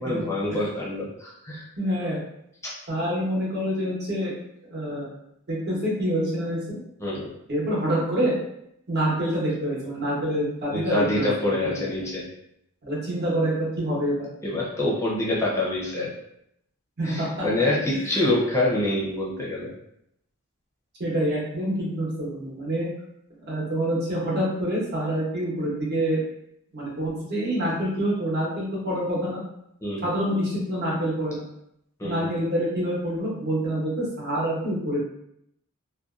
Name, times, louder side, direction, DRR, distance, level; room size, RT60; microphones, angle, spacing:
voice 1, 0.0-1.6 2.6-2.7 7.0-7.3 10.7-12.2 14.4-16.1 17.0-19.7 29.8-30.0 32.0-32.2, left 1 dB, 15° left, -5 dB, 0.6 m, -26 dB
voice 2, 1.8-2.2 2.9-4.3 4.7-5.1 5.5-6.8 7.5-8.3 8.9-11.3 11.7-11.9 12.8-14.3 17.0-17.5 17.9-18.2 21.0-22.9 23.5-26.2 26.7-29.4 30.0-31.5 32.0-35.0, right 1 dB, 50° right, -5 dB, 0.9 m, -26 dB
2.6 x 2.2 x 2.3 m, 0.76 s
head